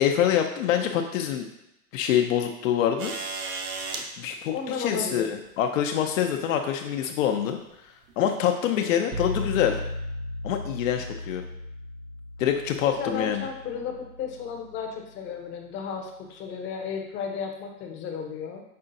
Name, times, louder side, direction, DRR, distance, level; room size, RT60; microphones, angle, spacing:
voice 1, 0.0-1.5 1.9-3.1 4.2-7.6 8.2-9.8 10.4-11.4 12.4-13.5, left 9 dB, 65° left, 4 dB, 0.6 m, -25 dB
sound 1, 3.0-4.1 5.5-5.6 6.9-7.2 8.1-8.2, right 4 dB, 40° right, 0.6 m, -34 dB
voice 2, 4.4-5.3 8.7-9.0 12.8-18.6, left 6 dB, 25° left, 2 dB, 0.7 m, -34 dB
sound 2, 9.1-14.9, left 1 dB, 60° right, 0.9 m, -36 dB
5.5 x 3.6 x 2.6 m, 0.86 s
hypercardioid pair, 125°, 43 cm